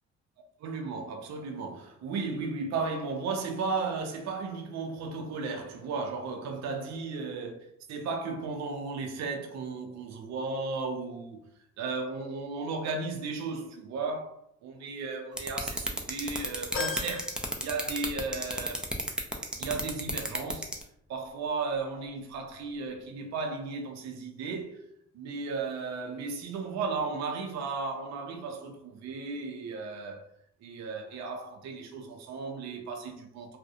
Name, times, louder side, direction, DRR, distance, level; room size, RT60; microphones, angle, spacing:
voice 1, 0.6-11.4 11.8-17.3 17.6-18.9 19.6-20.7 21.1-24.9 25.1-30.3 30.6-33.6, right 4 dB, 60° right, 0.5 m, -35 dB
sound 1, 15.4-20.8, right 1 dB, 5° right, 0.4 m, -31 dB
sound 2, 16.7-18.4 18.8-18.9 20.1-20.2, left 4 dB, 60° left, 0.8 m, -38 dB
2.3 x 2.1 x 2.6 m
cardioid pair, 90°, 30 cm